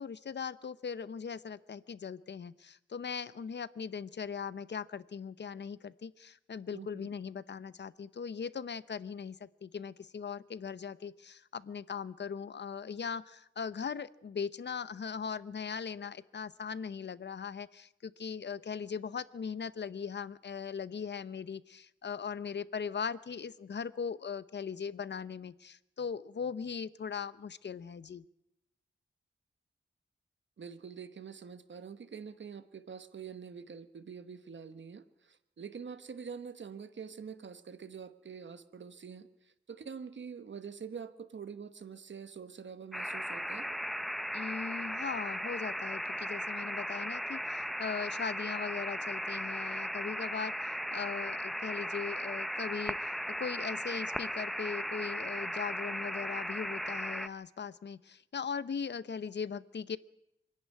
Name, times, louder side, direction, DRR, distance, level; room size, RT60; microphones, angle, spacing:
voice 1, 0.0-28.2 44.3-53.1 53.4-60.0, left 6 dB, 60° left, 17 dB, 0.7 m, -39 dB
voice 2, 6.7-7.1 30.6-43.7, right 6 dB, 65° right, 11 dB, 1.3 m, -46 dB
sound 1, 42.9-57.3, equal, ahead, 0.8 m, -37 dB
25.0 x 11.0 x 9.5 m, 0.85 s
wide cardioid pair, 100°, 21 cm